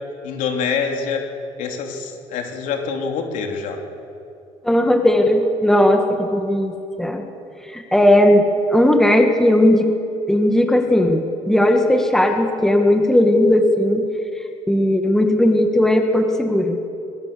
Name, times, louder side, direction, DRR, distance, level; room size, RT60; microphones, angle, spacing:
voice 1, 0.2-1.2 1.6-3.8, left 5 dB, 75° left, 2 dB, 3.2 m, -25 dB
voice 2, 4.6-7.2 7.7-8.4 8.7-9.9 10.3-14.0 14.7-16.8, left 1 dB, 5° left, 4 dB, 2.0 m, -16 dB
22.0 x 21.5 x 6.9 m, 2.6 s
cardioid pair, 110°, 13 cm